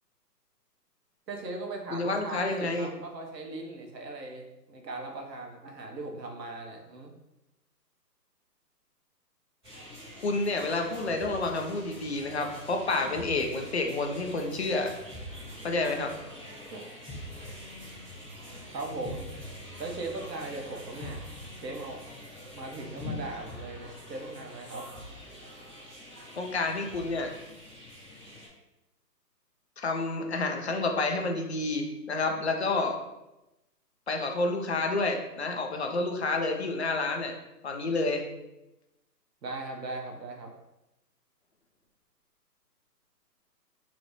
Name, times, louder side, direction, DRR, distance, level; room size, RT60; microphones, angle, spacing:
voice 1, 1.3-7.1 16.7-16.8 18.7-19.3 19.8-21.3 21.5-22.0 22.5-24.9 39.4-40.5, right 2 dB, 80° right, 2 dB, 1.1 m, -38 dB
voice 2, 1.9-2.9 10.2-14.9 15.6-16.2 26.4-27.3 29.8-33.0 34.1-37.3 37.6-38.2, left 3 dB, 45° left, 3 dB, 0.5 m, -29 dB
sound 1, 9.6-28.5, left 1 dB, 15° right, 1.3 m, -44 dB
4.6 x 3.0 x 2.6 m, 0.94 s
hypercardioid pair, 160°, 49 cm